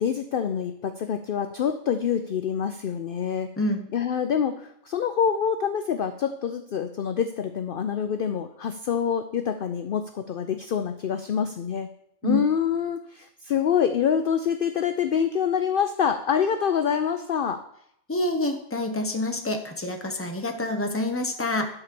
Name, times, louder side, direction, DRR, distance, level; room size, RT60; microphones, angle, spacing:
voice 1, 0.0-3.5 3.9-11.9 12.2-17.6, left 8 dB, 60° left, 8 dB, 0.6 m, -26 dB
voice 2, 3.6-3.9 12.2-12.4 18.1-21.7, left 1 dB, 10° left, 4 dB, 0.8 m, -27 dB
11.0 x 4.2 x 6.8 m, 0.71 s
omnidirectional pair, 1.4 m